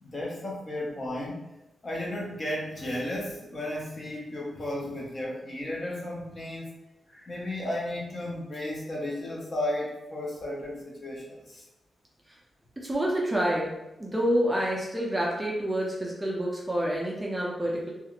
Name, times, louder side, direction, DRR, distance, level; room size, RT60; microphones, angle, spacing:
voice 1, 0.0-1.4 1.8-6.7 7.1-11.6, left 1 dB, 35° left, -3 dB, 0.6 m, -34 dB
voice 2, 12.8-13.7 14.0-17.9, equal, 10° right, -4 dB, 0.4 m, -28 dB
2.4 x 2.3 x 2.8 m, 0.94 s
wide cardioid pair, 155°, 0 cm